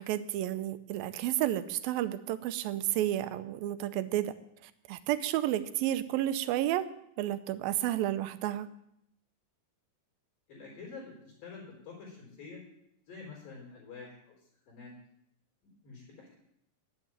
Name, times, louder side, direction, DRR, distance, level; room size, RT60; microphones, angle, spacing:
voice 1, 0.0-4.3 4.9-6.8 7.2-8.7, right 13 dB, 85° right, 13 dB, 2.6 m, -31 dB
voice 2, 10.5-12.6 13.1-14.4 14.7-14.9 15.8-16.4, left 4 dB, 75° left, -2 dB, 6.0 m, -47 dB
11.0 x 9.6 x 8.9 m, 0.76 s
omnidirectional pair, 4.0 m